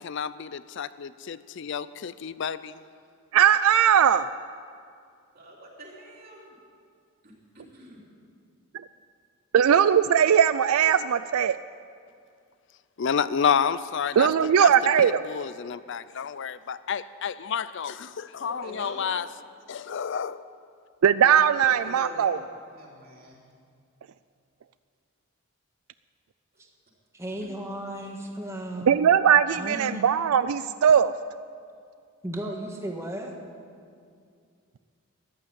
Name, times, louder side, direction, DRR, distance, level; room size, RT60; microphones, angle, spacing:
voice 1, 0.0-2.7 13.0-14.7 15.0-19.3 19.7-20.4, left 7 dB, 55° left, 15 dB, 0.4 m, -30 dB
voice 2, 3.3-4.3 9.5-11.6 14.2-15.2 21.0-22.4 28.9-31.1, right 8 dB, 80° right, 14 dB, 0.4 m, -19 dB
voice 3, 5.3-6.6 7.2-8.0 18.4-19.2 21.6-23.4 27.4-27.7, right 1 dB, 45° right, -3 dB, 3.5 m, -45 dB
voice 4, 27.1-29.1 29.5-30.1 32.2-33.3, right 1 dB, 15° right, 1 dB, 1.5 m, -35 dB
14.0 x 11.5 x 8.8 m, 2.3 s
head